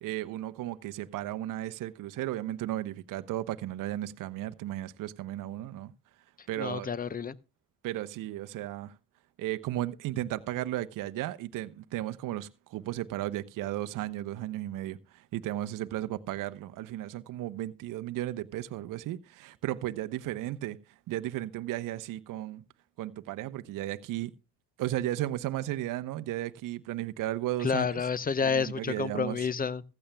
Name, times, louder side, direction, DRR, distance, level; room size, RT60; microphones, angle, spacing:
voice 1, 0.0-5.9 6.5-6.9 7.8-8.9 9.4-20.8 21.1-22.6 23.0-24.3 24.8-27.9 28.4-29.5, right 14 dB, 55° right, 0.8 m, -35 dB
voice 2, 6.6-7.4 27.6-29.8, left 6 dB, 20° left, 0.7 m, -29 dB
15.0 x 14.0 x 2.2 m
hypercardioid pair, 70°, 40 cm